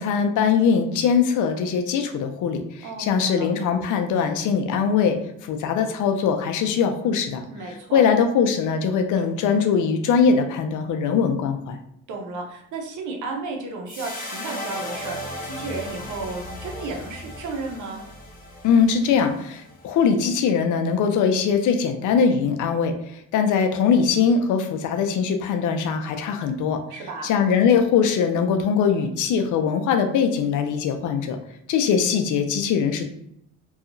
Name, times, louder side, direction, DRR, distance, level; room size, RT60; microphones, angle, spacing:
voice 1, 0.0-2.6 3.0-5.2 5.5-7.4 7.9-11.8 18.6-22.9 23.3-26.8 27.2-31.4 31.7-33.0, left 6 dB, 80° left, 6 dB, 0.5 m, -21 dB
voice 2, 2.8-3.5 7.5-8.1 12.1-18.0 26.9-27.3, right 3 dB, 80° right, 2 dB, 0.7 m, -33 dB
sound 1, 13.9-20.3, left 1 dB, 30° left, 0.9 m, -36 dB
2.8 x 2.3 x 2.5 m, 0.75 s
cardioid pair, 90°, 30 cm